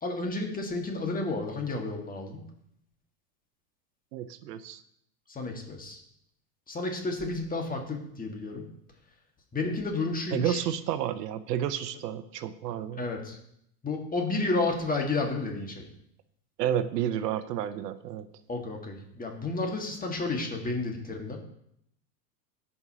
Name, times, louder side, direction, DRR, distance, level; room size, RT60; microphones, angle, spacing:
voice 1, 0.0-2.4 5.3-6.0 6.7-8.7 9.5-10.6 13.0-13.4 13.8-15.8 18.5-21.4, left 3 dB, 20° left, 2 dB, 1.7 m, -31 dB
voice 2, 4.1-4.8 10.3-13.0 16.6-18.3, right 10 dB, 85° right, 12 dB, 0.8 m, -31 dB
14.5 x 5.5 x 2.9 m, 0.73 s
hypercardioid pair, 110°, 47 cm